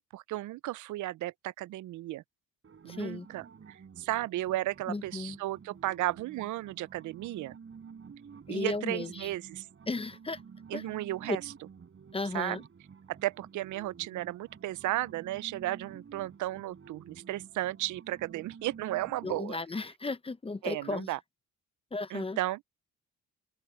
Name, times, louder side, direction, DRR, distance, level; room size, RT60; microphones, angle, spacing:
voice 1, 0.0-2.2 2.8-7.6 8.5-9.7 10.7-11.4 12.3-12.6 13.1-19.6 20.6-21.2 22.1-22.6, right 16 dB, 80° right, 0.6 m, -34 dB
sound 1, 2.6-19.4, right 6 dB, 45° right, 7.0 m, -51 dB
voice 2, 2.9-3.3 4.9-5.4 8.5-9.3 9.9-10.4 10.7-10.8 11.3-11.4 12.1-12.6 19.2-21.1 21.9-22.4, left 3 dB, 20° left, 0.8 m, -35 dB
open air
cardioid pair, 90°, 30 cm